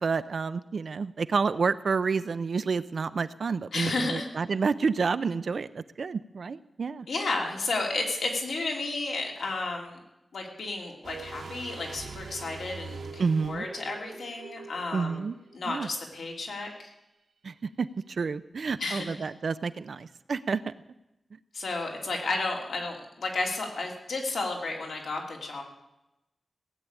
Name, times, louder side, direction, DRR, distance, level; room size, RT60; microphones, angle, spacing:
voice 1, 0.0-7.1 13.2-13.7 14.9-15.3 15.7-15.9 17.4-20.7, right 5 dB, 55° right, 12 dB, 0.5 m, -29 dB
voice 2, 3.7-4.3 7.1-10.0 10.3-15.2 15.5-16.9 18.8-19.3 21.5-25.6, left 3 dB, 80° left, 1 dB, 3.2 m, -32 dB
sound 1, 11.0-15.9 16.1-16.2, right 4 dB, 80° right, 1.6 m, -43 dB
17.5 x 8.3 x 9.0 m, 0.92 s
wide cardioid pair, 180°, 0 cm